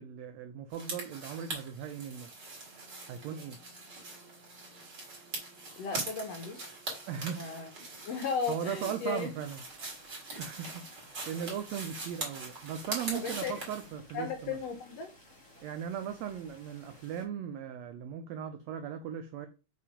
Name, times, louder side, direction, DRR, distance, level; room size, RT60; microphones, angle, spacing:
voice 1, 0.0-2.3 3.1-3.6 7.1-7.5 8.1-8.2 8.5-9.6 10.4-14.6 15.6-19.5, right 9 dB, 85° right, 1.5 m, -38 dB
sound 1, 0.7-13.9, right 2 dB, 35° right, 2.4 m, -42 dB
sound 2, 2.1-8.0, right 3 dB, 65° right, 2.5 m, -60 dB
voice 2, 5.8-6.7 7.3-7.7 8.0-9.3 10.3-10.4 13.1-13.5 14.1-15.1, left 5 dB, 75° left, 1.5 m, -35 dB
sound 3, 9.3-17.2, left 1 dB, 15° left, 1.3 m, -57 dB
5.9 x 3.6 x 4.9 m
omnidirectional pair, 3.7 m